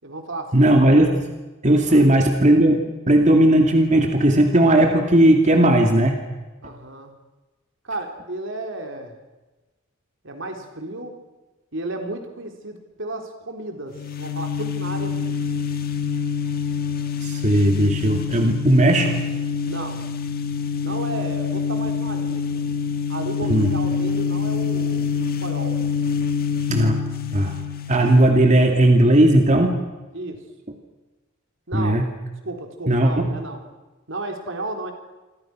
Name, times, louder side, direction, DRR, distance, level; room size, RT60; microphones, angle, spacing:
voice 1, 0.0-0.7 1.9-2.1 6.6-7.1 7.8-9.2 10.2-11.2 11.7-15.5 19.6-20.0 20.8-22.4 23.1-25.8 30.1-30.4 31.7-32.1 32.4-33.6 34.1-34.9, right 2 dB, 70° right, 4 dB, 4.0 m, -33 dB
voice 2, 0.5-1.3 1.6-2.8 3.1-6.2 17.2-19.2 23.4-23.7 26.7-27.0 27.3-27.6 27.9-29.8 31.7-32.0 32.9-33.3, right 1 dB, 35° right, 3 dB, 2.5 m, -16 dB
sound 1, 13.9-28.5, left 6 dB, 50° left, 1.8 m, -26 dB
28.5 x 24.0 x 6.3 m, 1.1 s
head